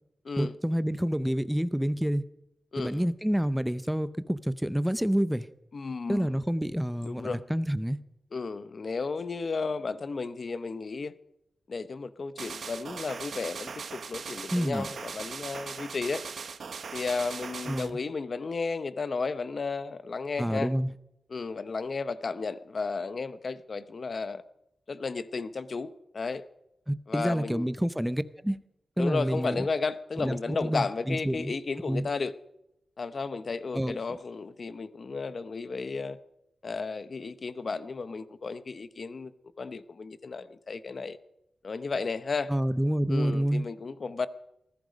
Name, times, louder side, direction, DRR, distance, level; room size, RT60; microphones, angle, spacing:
voice 1, 0.4-2.2 2.8-5.5 6.1-8.0 14.5-14.9 17.7-18.0 20.4-20.9 26.9-28.6 29.0-29.7 30.2-31.5 31.9-32.1 33.7-34.0 42.5-43.6, equal, 5° right, 0.6 m, -28 dB
voice 2, 2.7-3.1 5.7-6.4 7.0-7.4 8.3-11.1 11.7-16.2 16.9-20.7 21.3-24.4 24.9-26.4 27.1-27.7 29.0-32.3 33.0-36.2 36.6-39.3 39.6-41.2 41.6-42.5 43.1-44.3, left 4 dB, 45° left, 0.7 m, -33 dB
sound 1, 12.4-17.9, right 5 dB, 75° right, 1.1 m, -39 dB
19.5 x 14.5 x 5.1 m
wide cardioid pair, 150°, 0 cm